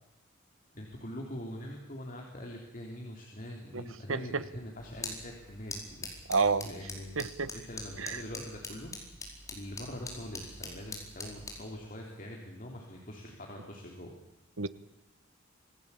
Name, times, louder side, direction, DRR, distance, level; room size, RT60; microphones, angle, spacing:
voice 1, 0.7-6.1 6.6-7.2 7.5-8.9 9.5-14.1, left 1 dB, 40° left, 0 dB, 3.8 m, -43 dB
voice 2, 4.1-4.4 6.3-6.7 7.2-7.5 8.0-8.2 14.6-14.7, right 4 dB, 75° right, 14 dB, 1.2 m, -29 dB
sound 1, 4.8-11.7, left 2 dB, 15° left, 4.8 m, -44 dB
27.0 x 18.0 x 8.6 m, 0.89 s
head